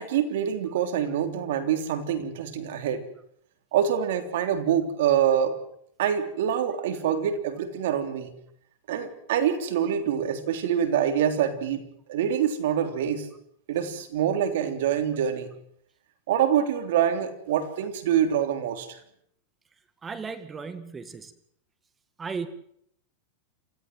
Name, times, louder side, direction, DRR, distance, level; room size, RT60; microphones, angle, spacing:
voice 1, 0.0-3.0 3.7-5.6 6.0-8.3 8.9-13.3 13.7-15.5 16.3-19.0, right 9 dB, 70° right, 8 dB, 3.3 m, -25 dB
voice 2, 20.0-21.3 22.2-22.5, right 5 dB, 15° right, 12 dB, 2.1 m, -35 dB
28.0 x 14.5 x 7.7 m, 0.70 s
supercardioid pair, 135°, 0 cm